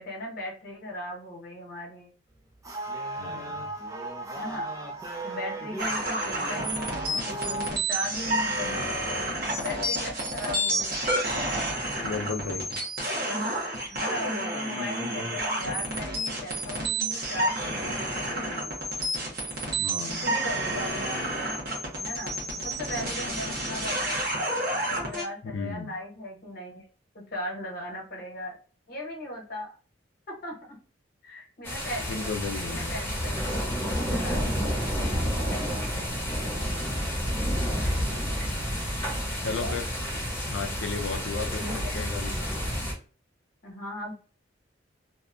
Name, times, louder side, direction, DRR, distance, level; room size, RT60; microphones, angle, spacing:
voice 1, 0.0-2.1 4.3-4.7 5.2-9.3 9.5-10.9 13.9-18.8 20.1-21.5 22.0-24.3 24.8-26.8 27.1-28.6 28.9-29.7 30.3-30.8 31.2-32.1 32.7-33.4 34.1-34.5 39.4-39.8 41.6-42.0 43.6-44.1, left 1 dB, 50° left, -2 dB, 1.0 m, -37 dB
sound 1, 2.3-7.7, right 2 dB, 15° right, 0.4 m, -36 dB
voice 2, 3.2-3.7 12.0-12.7 19.8-20.3 25.4-25.9 32.0-33.0 39.4-39.9 40.5-42.4, left 4 dB, 75° left, 6 dB, 0.4 m, -34 dB
sound 2, 5.8-25.3, right 1 dB, 50° right, 0.9 m, -30 dB
sound 3, 31.6-42.9, equal, 10° left, 0.9 m, -30 dB
2.7 x 2.3 x 2.4 m, 0.38 s
head